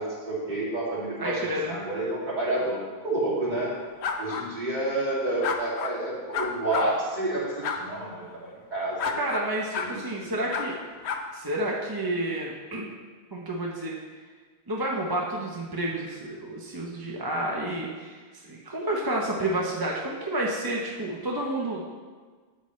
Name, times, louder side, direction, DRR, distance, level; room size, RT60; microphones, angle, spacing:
voice 1, 0.0-3.7 4.2-9.2 9.8-10.3, right 1 dB, 45° right, -7 dB, 2.7 m, -29 dB
voice 2, 1.2-1.8 9.2-10.7 11.3-12.9 13.3-13.9 14.7-21.9, right 1 dB, 25° right, -3 dB, 0.7 m, -30 dB
sound 1, 4.0-4.4 5.4-5.9 6.3-6.9 7.6-7.8 9.0-9.4 9.7-9.9 10.5-10.6 11.0-11.2, left 6 dB, 85° left, 1.0 m, -29 dB
9.5 x 8.1 x 3.2 m, 1.5 s
omnidirectional pair, 1.1 m